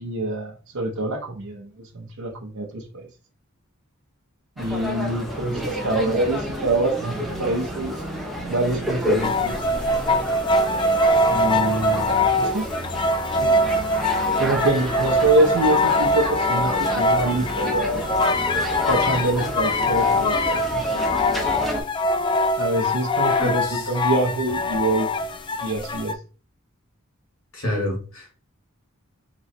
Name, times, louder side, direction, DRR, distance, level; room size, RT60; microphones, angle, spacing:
voice 1, 0.0-3.1 4.6-8.0 8.5-9.6 11.3-12.7 13.4-13.6 14.4-18.0 18.9-21.2 22.6-25.1 25.6-26.2, right 2 dB, 85° right, -3 dB, 0.8 m, -25 dB
sound 1, 4.6-21.8, equal, ahead, 0.8 m, -30 dB
sound 2, 9.2-26.1, left 1 dB, 25° left, 0.3 m, -23 dB
voice 2, 23.4-23.9 27.5-28.4, left 1 dB, 75° left, -1 dB, 2.1 m, -28 dB
3.7 x 3.1 x 4.1 m, 0.36 s
head